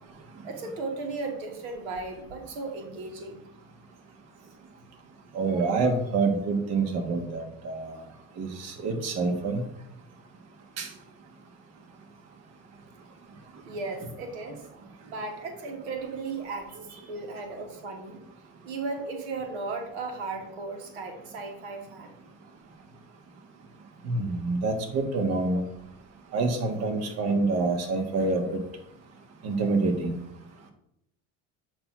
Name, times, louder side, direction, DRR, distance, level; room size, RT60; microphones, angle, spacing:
voice 1, 0.4-3.4 5.5-5.6 13.6-14.6 15.1-18.2 18.6-22.1, right 3 dB, 90° right, 4 dB, 1.4 m, -36 dB
voice 2, 5.3-8.0 8.4-9.6 10.8-10.9 24.1-25.6 26.3-28.6 29.4-30.2, right 3 dB, 55° right, 3 dB, 1.4 m, -27 dB
7.8 x 3.0 x 5.8 m, 0.76 s
supercardioid pair, 105°, 31 cm